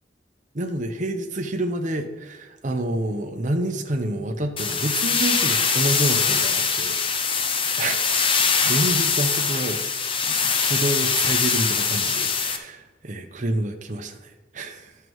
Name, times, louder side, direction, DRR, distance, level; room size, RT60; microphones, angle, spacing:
voice 1, 0.5-7.4 7.8-8.0 8.3-9.8 10.2-14.9, right 1 dB, 45° right, 4 dB, 0.8 m, -28 dB
sound 1, 4.6-12.6, left 5 dB, 30° left, 0.7 m, -22 dB
13.0 x 6.7 x 3.1 m, 1.2 s
head